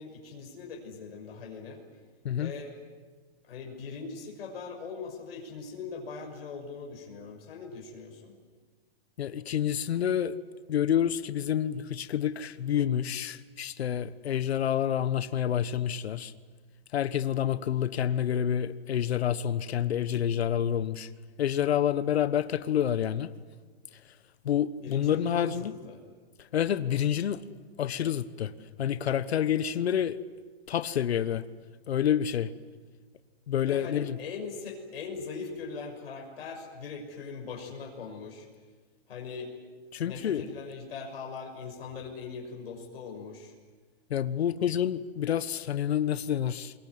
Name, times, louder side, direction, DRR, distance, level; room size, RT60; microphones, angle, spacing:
voice 1, 0.0-1.8 2.4-2.7 3.4-8.3 24.8-26.0 33.5-38.5 39.1-39.5 40.0-43.5, left 5 dB, 70° left, 1 dB, 6.3 m, -41 dB
voice 2, 9.2-10.4 10.7-16.3 16.9-21.1 21.4-23.3 24.4-25.7 26.4-27.4 27.8-28.5 28.8-30.2 30.7-31.4 31.9-32.5 33.5-34.2 39.9-40.4 44.1-46.7, left 10 dB, 85° left, 14 dB, 1.3 m, -28 dB
26.5 x 22.5 x 9.7 m, 1.4 s
hypercardioid pair, 165°, 31 cm